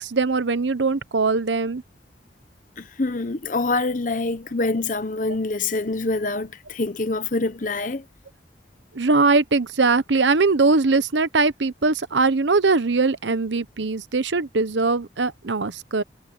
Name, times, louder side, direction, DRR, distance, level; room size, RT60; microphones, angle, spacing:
voice 1, 0.0-1.8 8.9-16.0, right 3 dB, 80° right, 0.9 m, -21 dB
voice 2, 2.8-8.0, left 3 dB, 45° left, 0.9 m, -25 dB
head